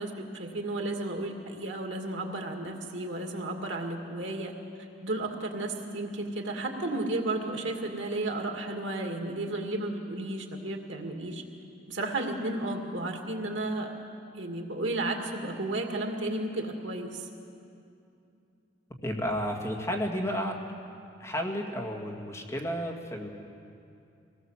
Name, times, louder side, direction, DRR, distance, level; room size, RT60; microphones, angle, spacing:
voice 1, 0.0-4.5 5.0-11.4 11.9-13.9 14.3-17.3, right 2 dB, 80° right, 2 dB, 2.3 m, -33 dB
voice 2, 19.0-20.5 21.2-23.3, equal, 15° left, 0 dB, 2.1 m, -32 dB
24.5 x 18.5 x 7.4 m, 2.6 s
head